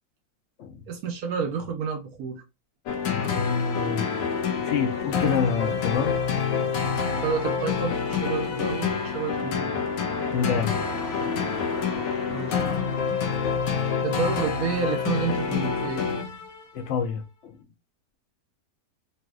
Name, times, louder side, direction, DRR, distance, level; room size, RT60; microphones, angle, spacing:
voice 1, 0.9-2.4 7.1-9.8 12.3-12.6 14.0-16.1, right 5 dB, 70° right, 0.9 m, -30 dB
sound 1, 2.9-16.6, left 6 dB, 90° left, 1.3 m, -27 dB
voice 2, 3.3-4.1 4.6-6.5 7.1-7.2 10.3-10.7 11.1-11.3 11.9-12.0 16.7-17.6, left 6 dB, 60° left, 0.8 m, -28 dB
sound 2, 4.8-15.0, right 1 dB, ahead, 0.6 m, -44 dB
3.2 x 2.9 x 2.2 m
omnidirectional pair, 1.9 m